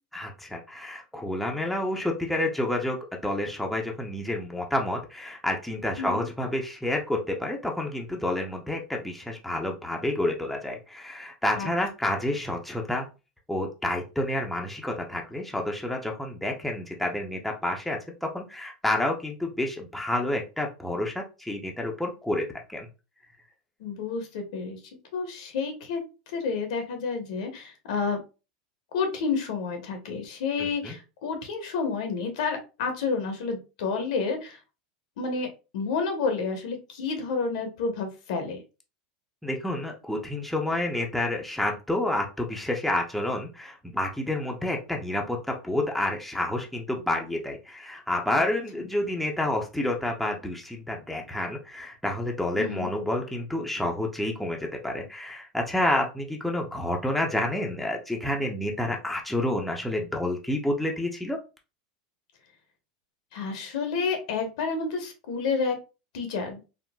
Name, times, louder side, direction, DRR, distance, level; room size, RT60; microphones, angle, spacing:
voice 1, 0.1-13.1 13.5-22.9 30.6-30.9 39.4-61.4, left 1 dB, ahead, 1 dB, 0.6 m, -29 dB
voice 2, 23.8-24.8 25.1-28.2 28.9-34.6 35.2-35.5 35.7-38.6 52.6-52.9 63.3-65.8 66.1-66.6, left 4 dB, 75° left, 5 dB, 0.9 m, -30 dB
3.7 x 2.1 x 2.2 m, 0.30 s
hypercardioid pair, 110°, 4 cm